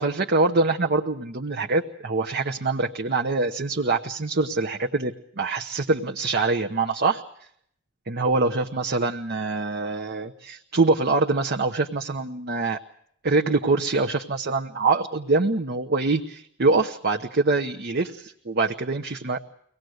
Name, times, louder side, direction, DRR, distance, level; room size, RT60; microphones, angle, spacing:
voice 1, 0.0-7.2 8.1-12.8 13.2-19.4, right 3 dB, 50° right, 3 dB, 1.0 m, -24 dB
24.5 x 18.5 x 8.0 m, 0.69 s
head